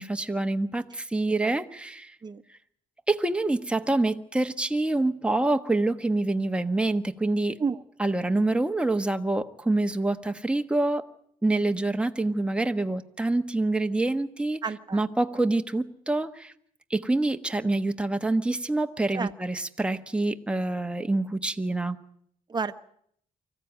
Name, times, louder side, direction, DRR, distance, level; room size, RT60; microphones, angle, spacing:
voice 1, 0.0-2.1 3.1-7.6 8.0-11.1 11.4-14.6 14.9-16.5 16.9-22.0, right 2 dB, 5° right, 6 dB, 1.2 m, -26 dB
voice 2, 14.6-15.0 19.1-19.3 22.5-22.7, right 5 dB, 30° right, 9 dB, 1.1 m, -30 dB
25.0 x 15.0 x 9.2 m, 0.67 s
cardioid pair, 115°, 15 cm